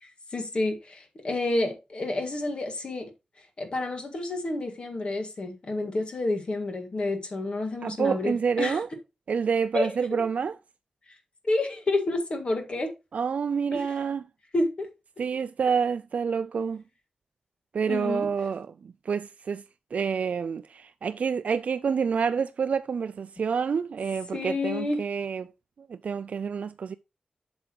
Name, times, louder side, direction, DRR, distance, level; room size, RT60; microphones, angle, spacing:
voice 1, 0.0-3.1 3.6-8.8 9.7-10.2 11.4-12.9 13.7-13.9 14.5-14.9 17.9-18.3 24.3-25.0, left 2 dB, 45° left, 1.8 m, -29 dB
voice 2, 7.8-8.9 9.3-10.6 13.1-14.2 15.2-16.8 17.7-19.6 19.9-25.5 25.8-26.9, right 6 dB, 65° right, 0.3 m, -28 dB
7.9 x 6.9 x 2.9 m
wide cardioid pair, 160°, 3 cm